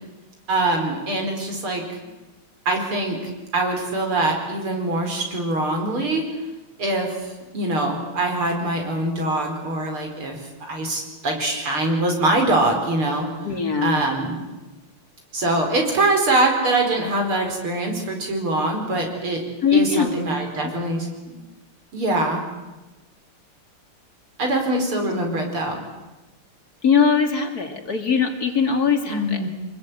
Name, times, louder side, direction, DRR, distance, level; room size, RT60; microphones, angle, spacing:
voice 1, 0.5-1.8 2.7-6.2 6.8-10.4 10.6-13.3 13.8-14.4 15.3-19.4 19.7-21.4 21.9-22.4 24.4-25.8 29.1-29.5, right 2 dB, 75° right, 3 dB, 5.4 m, -23 dB
voice 2, 13.4-14.0 19.6-20.7 25.0-25.1 26.8-29.5, left 6 dB, 45° left, 5 dB, 2.7 m, -21 dB
25.5 x 20.0 x 9.2 m, 1.1 s
omnidirectional pair, 2.4 m